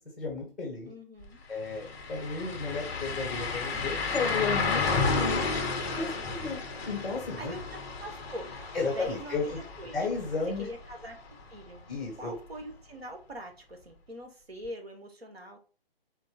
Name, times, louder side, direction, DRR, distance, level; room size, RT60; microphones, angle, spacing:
voice 1, 0.2-0.9 1.5-5.4 5.9-6.6 6.9-7.5 8.7-9.6 9.9-10.7 11.9-12.3, left 4 dB, ahead, -1 dB, 1.2 m, -33 dB
voice 2, 0.9-1.4 6.0-6.6 7.4-8.5 8.9-10.0 10.6-11.2 11.5-11.8 12.2-15.6, equal, 85° right, 3 dB, 1.4 m, -43 dB
sound 1, 1.2-1.3 1.6-11.4 11.8-11.9 14.6-14.7, left 4 dB, 20° left, 0.6 m, -32 dB
4.3 x 2.4 x 3.7 m, 0.38 s
figure-of-eight pair, 150°, 30 cm